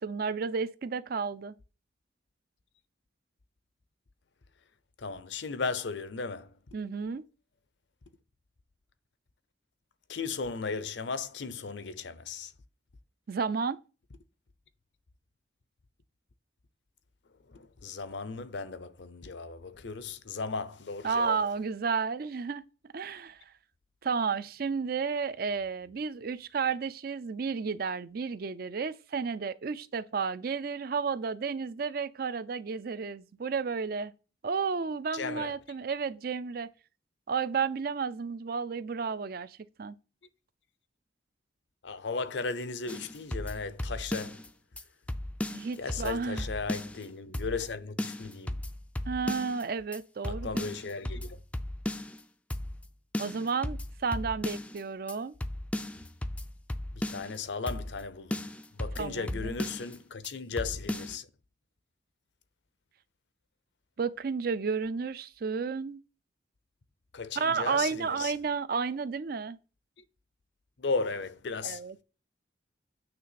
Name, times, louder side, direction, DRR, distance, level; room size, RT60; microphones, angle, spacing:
voice 1, 0.0-1.5 6.7-7.2 13.3-13.8 21.0-22.6 22.9-23.4 24.0-34.1 34.4-36.7 37.3-40.0 45.5-46.5 49.1-50.7 53.2-55.3 59.0-59.5 64.0-66.0 67.4-69.6 71.6-71.9, right 5 dB, 55° right, 0.4 m, -32 dB
voice 2, 5.0-6.5 10.1-12.5 17.5-21.4 35.1-35.6 41.8-44.4 45.8-48.6 50.2-51.4 56.9-58.4 58.7-61.3 67.1-68.3 70.8-72.0, left 4 dB, 75° left, 0.6 m, -36 dB
sound 1, 42.9-44.5 44.8-44.9 45.1-47.1 47.3-47.7 48.0-49.6 49.9-50.0 50.2-52.2 52.5-52.9 53.1-54.8 55.1-55.2 55.4-57.4 57.7-58.0 58.3-60.0 60.2-60.3 60.6-61.2, left 1 dB, 5° left, 0.3 m, -36 dB
8.8 x 3.4 x 5.8 m
head